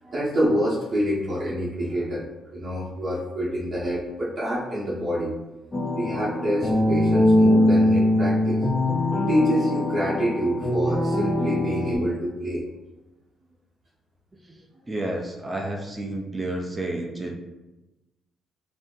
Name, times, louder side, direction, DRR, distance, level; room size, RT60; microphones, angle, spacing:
voice 1, 0.0-2.2 2.5-5.3 6.0-8.7 9.3-12.6, equal, 45° right, -7 dB, 0.8 m, -26 dB
sound 1, 5.7-12.0, left 1 dB, 25° left, 0.6 m, -22 dB
voice 2, 14.4-17.3, right 1 dB, 20° right, 0 dB, 0.5 m, -31 dB
2.6 x 2.1 x 3.6 m, 1.1 s
cardioid pair, 90°, 0 cm